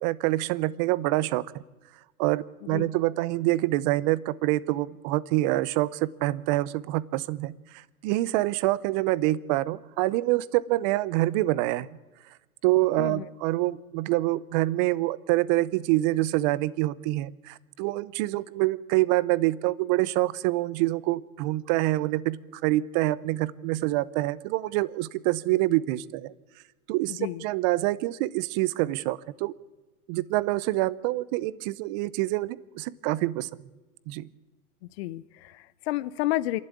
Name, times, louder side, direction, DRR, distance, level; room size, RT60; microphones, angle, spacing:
voice 1, 0.0-1.4 2.2-11.9 12.6-26.3 26.9-29.5 30.1-33.5 34.1-34.3, right 17 dB, 30° right, 20 dB, 0.6 m, -26 dB
voice 2, 27.1-27.4 35.0-36.6, left 16 dB, 45° left, 15 dB, 0.8 m, -30 dB
27.0 x 11.5 x 8.5 m, 1.2 s
hypercardioid pair, 135°, 44 cm